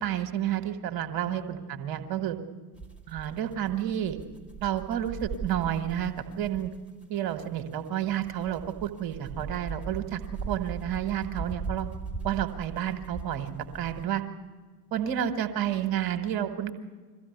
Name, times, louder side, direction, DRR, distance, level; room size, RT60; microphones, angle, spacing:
voice 1, 0.0-2.4 3.1-4.2 4.6-6.7 7.1-10.2 10.5-11.9 12.2-13.5 13.7-14.2 14.9-16.7, right 10 dB, 45° right, 8 dB, 1.8 m, -30 dB
sound 1, 2.7-7.0 7.4-7.5 8.0-14.0, right 5 dB, ahead, 2.4 m, -39 dB
22.0 x 15.0 x 8.1 m, 1.4 s
figure-of-eight pair, 65°, 49 cm